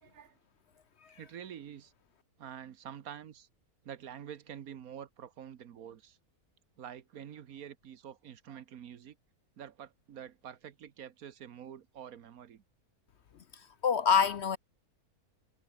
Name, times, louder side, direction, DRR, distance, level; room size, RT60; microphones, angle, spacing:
voice 1, 0.0-0.3 1.2-1.9 2.4-3.5 3.8-6.2 6.8-9.2 9.6-12.6, right 9 dB, 70° right, 1.5 m, -47 dB
voice 2, 13.8-14.6, left 6 dB, 55° left, 0.9 m, -26 dB
omnidirectional pair, 1.6 m